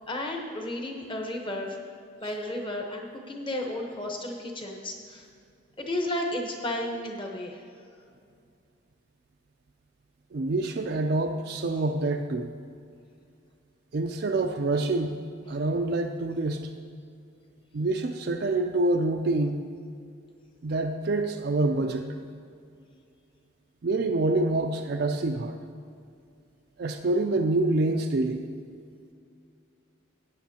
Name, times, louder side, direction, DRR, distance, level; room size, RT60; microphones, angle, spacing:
voice 1, 0.1-1.8 2.2-5.3 5.8-7.6, left 1 dB, 25° left, 1 dB, 1.0 m, -33 dB
voice 2, 10.3-12.5 13.9-15.2 15.5-16.7 17.7-19.6 20.6-22.1 23.8-25.6 26.8-28.5, right 2 dB, 50° right, 4 dB, 0.4 m, -26 dB
16.5 x 8.3 x 2.8 m, 2.3 s
head